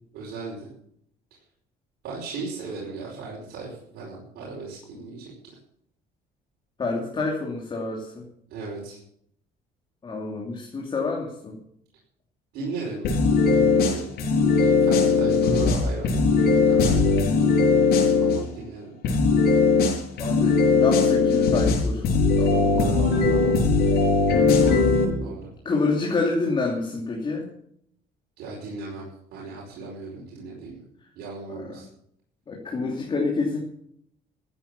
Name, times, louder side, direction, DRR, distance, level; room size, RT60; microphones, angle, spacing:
voice 1, 0.1-0.7 2.0-5.3 8.5-9.0 12.5-13.1 13.4-14.1 14.5-17.9 18.2-18.9 22.8-23.9 24.6-24.9 25.2-25.5 28.4-30.8 31.1-31.9, right 4 dB, 80° right, -4 dB, 5.0 m, -36 dB
voice 2, 6.8-8.2 10.0-11.5 20.2-22.0 22.4-23.5 24.4-24.5 25.6-27.5 31.6-31.8 32.5-33.6, left 3 dB, 30° left, -1 dB, 2.8 m, -28 dB
sound 1, 13.0-18.4 19.0-25.0, left 4 dB, 75° left, 6.4 m, -19 dB
14.5 x 8.9 x 7.0 m, 0.70 s
cardioid pair, 130°, 16 cm